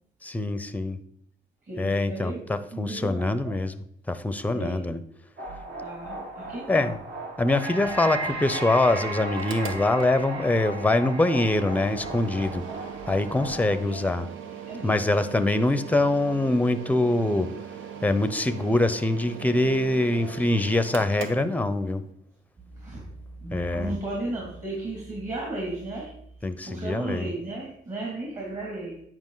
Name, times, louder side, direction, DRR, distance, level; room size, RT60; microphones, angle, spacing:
voice 1, 0.2-1.0 1.8-3.7 4.1-5.0 6.7-6.9 7.4-12.6 13.1-14.3 14.8-17.5 18.0-22.0 23.5-23.9 26.4-27.3, left 2 dB, 10° left, 12 dB, 0.6 m, -24 dB
voice 2, 1.6-2.4 2.7-3.6 4.5-4.8 5.8-6.9 13.8-14.1 14.7-15.0 20.1-20.4 22.6-26.3 26.6-29.0, right 2 dB, 40° right, -3 dB, 2.5 m, -35 dB
sound 1, 5.4-13.8, right 2 dB, 60° right, 1.7 m, -35 dB
Mechanical fan, 9.3-22.1, right 7 dB, 75° right, 0.9 m, -40 dB
9.5 x 4.8 x 3.9 m, 0.70 s
cardioid pair, 90°, 20 cm